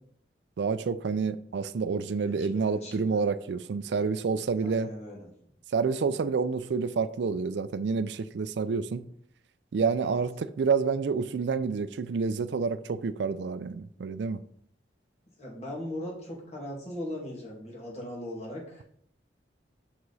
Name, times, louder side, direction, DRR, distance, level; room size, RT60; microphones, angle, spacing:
voice 1, 0.6-4.9 5.7-9.1 9.7-14.4, right 5 dB, 70° right, 0.4 m, -28 dB
voice 2, 2.3-3.2 4.6-5.3 10.1-10.2 15.4-18.8, left 1 dB, 35° left, 2.2 m, -39 dB
6.4 x 4.8 x 4.1 m
head